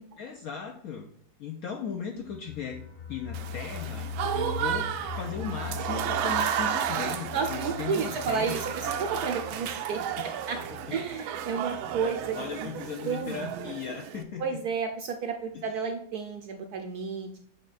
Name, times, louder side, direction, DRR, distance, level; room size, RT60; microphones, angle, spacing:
voice 1, 0.2-1.1 1.4-2.8 3.1-4.9 5.2-8.6 10.0-10.3 10.9-11.0 12.3-14.6 15.5-15.6, left 7 dB, 70° left, 3 dB, 0.8 m, -37 dB
sound 1, 2.2-12.9 13.2-13.3 13.6-13.7, left 5 dB, 55° left, 1.6 m, -41 dB
Applause / Crowd, 3.3-14.2, right 9 dB, 90° right, 1.4 m, -33 dB
voice 2, 7.3-10.0 10.5-10.6 10.9-12.7 13.0-13.6 14.4-17.4, right 5 dB, 70° right, 4 dB, 0.9 m, -32 dB
7.4 x 3.5 x 4.0 m, 0.63 s
omnidirectional pair, 2.1 m